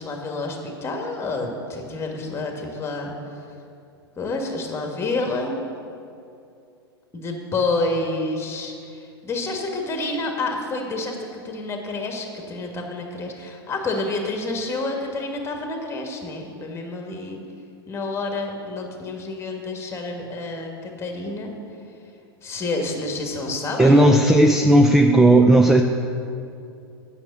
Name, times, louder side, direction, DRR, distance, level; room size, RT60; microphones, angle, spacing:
voice 1, 0.0-3.1 4.2-5.6 7.1-17.4 17.9-21.5 22.4-24.4, left 2 dB, 20° left, 2 dB, 1.7 m, -28 dB
voice 2, 23.8-25.8, right 1 dB, 5° right, 5 dB, 0.4 m, -14 dB
8.9 x 6.5 x 7.0 m, 2.6 s
hypercardioid pair, 100°, 13 cm